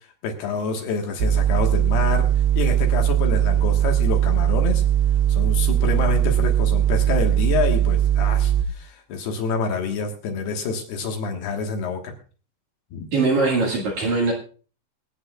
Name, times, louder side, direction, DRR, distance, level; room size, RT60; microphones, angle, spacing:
voice 1, 0.2-2.3 2.5-4.8 5.3-12.1 12.9-13.1, left 5 dB, 70° left, 2 dB, 3.2 m, -27 dB
sound 1, 1.2-8.6, right 11 dB, 75° right, 3.2 m, -19 dB
voice 2, 13.1-14.3, right 3 dB, 55° right, -1 dB, 2.4 m, -21 dB
26.0 x 8.8 x 2.3 m, 0.38 s
omnidirectional pair, 5.3 m